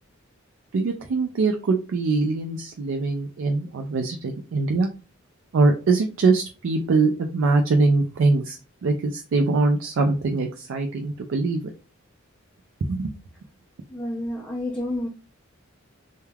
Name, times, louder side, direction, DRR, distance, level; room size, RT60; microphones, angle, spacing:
voice 1, 0.7-4.9 5.5-11.6 12.9-13.1, right 3 dB, 65° right, 3 dB, 0.4 m, -22 dB
voice 2, 13.9-15.1, left 1 dB, 5° left, -4 dB, 0.4 m, -29 dB
3.2 x 2.2 x 2.3 m, 0.35 s
head